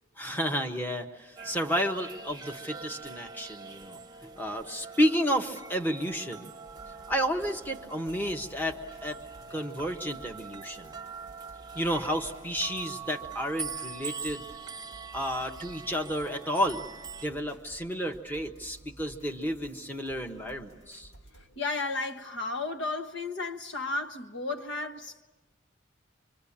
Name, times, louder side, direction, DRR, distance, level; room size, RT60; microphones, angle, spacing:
voice 1, 0.2-6.5 7.1-9.2 9.5-10.9 11.7-14.4 15.1-16.9 17.2-21.1, equal, 10° left, 1.3 m, -31 dB
sound 1, 1.4-17.3, right 5 dB, 20° right, 1.0 m, -43 dB
sound 2, 6.6-21.5, right 1 dB, 90° left, 4.6 m, -54 dB
voice 2, 21.6-25.2, left 3 dB, 65° left, 1.3 m, -33 dB
25.5 x 25.0 x 8.7 m
head